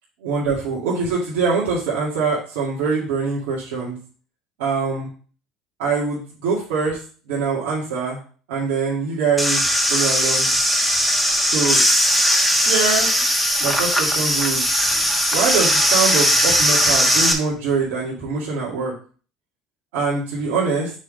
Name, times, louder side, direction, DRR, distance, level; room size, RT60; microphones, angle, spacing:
voice 1, 0.2-4.0 4.6-5.1 5.8-7.0 7.3-8.2 8.5-9.6 9.9-10.5 11.5-11.8 12.5-13.1 13.6-14.6 15.3-18.9 19.9-20.9, right 4 dB, 85° right, -7 dB, 2.1 m, -23 dB
sound 1, 9.4-17.3, equal, ahead, 1.4 m, -18 dB
6.3 x 3.8 x 5.1 m, 0.41 s
supercardioid pair, 90°, 0 cm